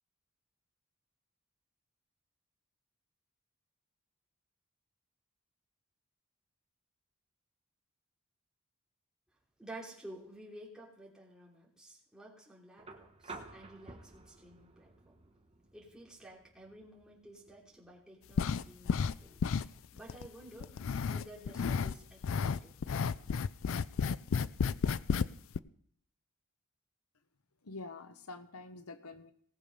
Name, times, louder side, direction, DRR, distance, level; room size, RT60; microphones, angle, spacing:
voice 1, 9.6-14.9 15.7-19.4 19.9-20.7 21.1-23.2, right 1 dB, 5° right, -5 dB, 3.1 m, -52 dB
sound 1, 12.8-20.8 22.2-22.3, right 3 dB, 25° right, 1.1 m, -54 dB
sound 2, 18.4-19.2 19.4-20.3 20.6-21.9 22.2-25.3 25.5-25.6, left 6 dB, 65° left, 0.4 m, -32 dB
voice 2, 27.6-29.3, left 3 dB, 80° left, 10 dB, 1.0 m, -47 dB
18.5 x 6.8 x 5.4 m, 0.66 s
head